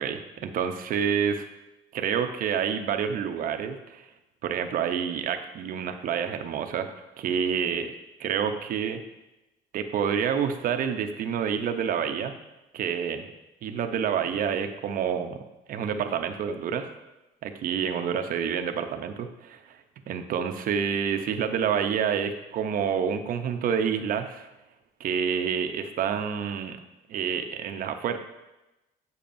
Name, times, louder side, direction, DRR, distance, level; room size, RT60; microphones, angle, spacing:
voice 1, 0.0-1.5 1.9-4.1 4.4-6.9 7.2-7.9 8.2-9.0 9.7-12.3 12.7-13.3 13.6-15.4 15.7-16.9 17.4-19.8 20.1-24.5 25.0-26.8 27.1-28.2, right 7 dB, 55° right, 7 dB, 0.6 m, -28 dB
8.0 x 7.0 x 2.6 m, 1.0 s
cardioid pair, 110°, 17 cm